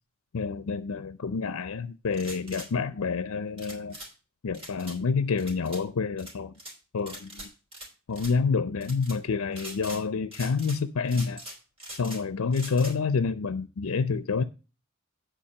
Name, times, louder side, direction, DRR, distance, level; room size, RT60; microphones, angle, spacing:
voice 1, 0.3-4.0 4.4-6.5 6.9-7.5 8.1-11.4 11.9-14.4, left 5 dB, 90° left, 0.5 m, -28 dB
sound 1, 2.1-2.7 3.6-4.1 4.5-5.0 5.4-5.8 6.2-6.7 7.1-7.9 8.1-8.3 8.8-9.2 9.5-10.0 10.3-10.8 11.1-12.2 12.5-12.9, right 1 dB, 25° right, 3.7 m, -42 dB
8.7 x 5.0 x 6.5 m
head